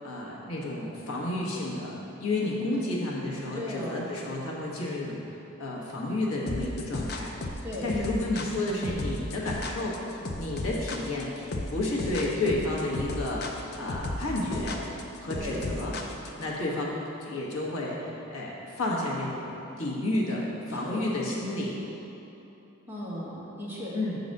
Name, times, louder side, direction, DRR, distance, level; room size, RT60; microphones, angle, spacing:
voice 1, 0.0-1.9 2.2-5.2 5.6-7.3 7.8-11.3 11.7-14.8 15.2-16.0 16.4-21.8 23.9-24.2, left 2 dB, 90° left, -4 dB, 1.2 m, -31 dB
voice 2, 2.4-2.9 3.5-4.0 7.6-7.9 15.4-15.7 20.8-21.1 22.9-23.9, left 1 dB, 10° right, -7 dB, 1.1 m, -36 dB
sound 1, 6.5-16.5, left 2 dB, 50° left, 0.5 m, -34 dB
6.6 x 3.9 x 6.4 m, 3.0 s
head